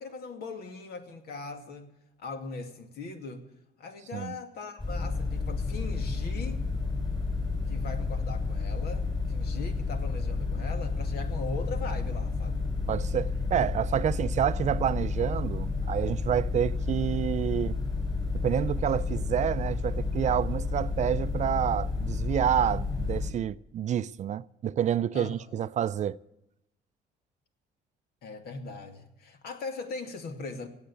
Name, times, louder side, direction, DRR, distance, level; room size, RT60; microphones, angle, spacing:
voice 1, 0.0-1.9 2.2-3.5 3.8-6.6 7.7-12.6 25.1-25.4 28.2-30.7, left 3 dB, 70° left, 2.3 m, -40 dB
sound 1, 4.8-23.3, left 3 dB, 25° left, 6.5 m, -31 dB
voice 2, 12.9-17.8 18.4-26.2, right 10 dB, 45° right, 0.5 m, -28 dB
17.0 x 8.1 x 8.3 m
cardioid pair, 110°, 17 cm